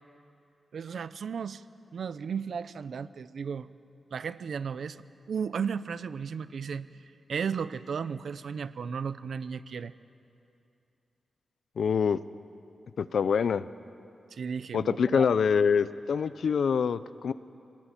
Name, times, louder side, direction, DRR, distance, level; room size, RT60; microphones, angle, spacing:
voice 1, 0.7-1.6 1.9-3.7 4.1-5.0 5.3-6.9 7.3-9.9 14.3-15.3, right 6 dB, 70° right, 14 dB, 0.7 m, -34 dB
voice 2, 11.8-12.2 13.0-13.7 14.7-17.3, left 6 dB, 75° left, 15 dB, 0.6 m, -25 dB
24.5 x 19.5 x 9.1 m, 2.6 s
wide cardioid pair, 125°, 0 cm